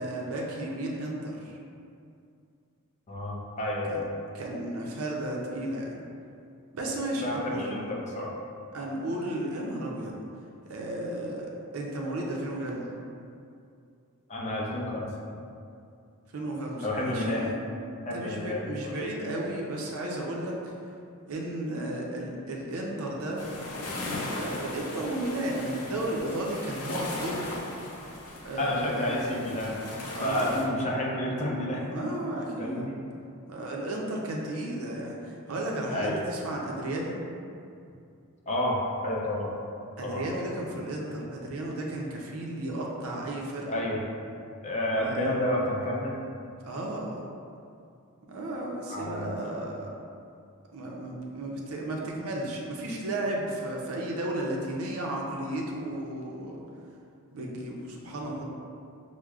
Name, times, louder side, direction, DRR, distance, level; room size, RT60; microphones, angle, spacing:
voice 1, 0.0-1.6 3.9-4.0 4.3-6.0 6.7-7.7 8.7-10.1 10.7-12.9 16.3-17.6 18.1-20.7 21.3-23.4 24.3-27.7 28.4-29.2 30.1-30.6 31.9-32.9 33.5-37.2 40.0-43.8 45.0-45.4 46.6-47.2 48.3-49.9 50.7-56.6 57.3-58.4, right 1 dB, 65° right, -2 dB, 0.5 m, -34 dB
voice 2, 3.1-4.1 7.2-8.3 14.3-15.1 16.8-17.5 18.0-18.9 28.6-29.8 30.2-31.8 32.6-33.0 35.9-36.2 38.5-38.8 39.0-39.5 40.0-40.3 43.7-44.0 44.6-46.2 48.9-49.6, left 1 dB, 30° left, -3 dB, 0.5 m, -30 dB
sound 1, 23.4-30.7, left 1 dB, 80° left, 0.6 m, -37 dB
6.0 x 2.1 x 2.3 m, 2.5 s
head